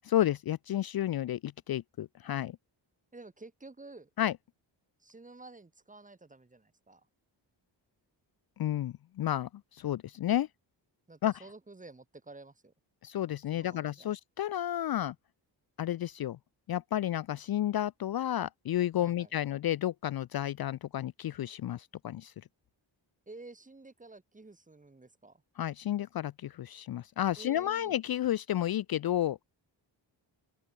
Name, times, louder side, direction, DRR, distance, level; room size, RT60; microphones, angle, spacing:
voice 1, 0.0-2.6 4.2-4.3 8.6-10.5 11.2-11.3 13.0-15.1 15.8-16.4 16.7-22.3 25.6-29.4, left 12 dB, 55° left, 0.5 m, -31 dB
voice 2, 3.1-4.1 5.0-7.1 11.1-12.7 13.5-14.1 19.0-19.3 23.3-25.4 27.4-27.9, right 3 dB, 15° right, 1.5 m, -51 dB
open air
wide cardioid pair, 115°, 45 cm